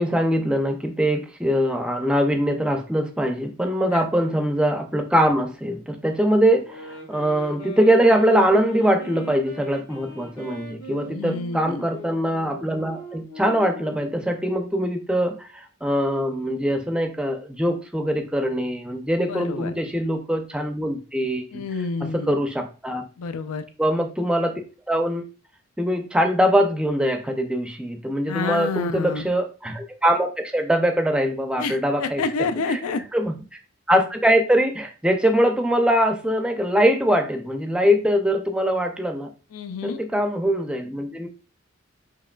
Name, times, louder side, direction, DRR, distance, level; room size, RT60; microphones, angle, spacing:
voice 1, 0.0-21.6 22.1-23.0 23.8-24.5 24.9-25.2 25.8-32.2 32.7-32.8 33.1-33.3 33.9-39.3 39.8-41.3, equal, 5° right, 5 dB, 0.4 m, -22 dB
sound 1, 6.6-14.2, equal, 55° left, 1.7 m, -40 dB
voice 2, 11.1-11.8 19.3-19.7 21.5-22.4 23.2-23.6 28.3-29.3 31.6-33.0 39.5-40.0, left 4 dB, 90° left, 10 dB, 0.4 m, -28 dB
4.7 x 2.9 x 2.2 m, 0.36 s
head